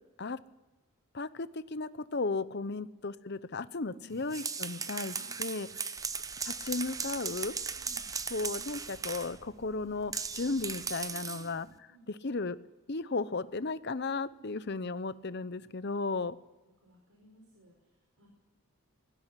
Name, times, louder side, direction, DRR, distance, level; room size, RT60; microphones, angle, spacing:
voice 1, 1.1-5.9 6.4-7.5 8.3-11.7 12.2-12.6 12.9-16.4, left 3 dB, 50° left, 15 dB, 0.8 m, -35 dB
sound 1, 4.1-9.4 10.1-11.5, right 5 dB, 15° right, 0.6 m, -37 dB
sound 2, 5.9-11.0, right 1 dB, 90° right, 4.4 m, -58 dB
voice 2, 7.7-8.1 11.1-12.1 16.8-18.3, right 1 dB, 75° right, 0 dB, 5.0 m, -59 dB
19.0 x 15.5 x 9.8 m, 1.2 s
head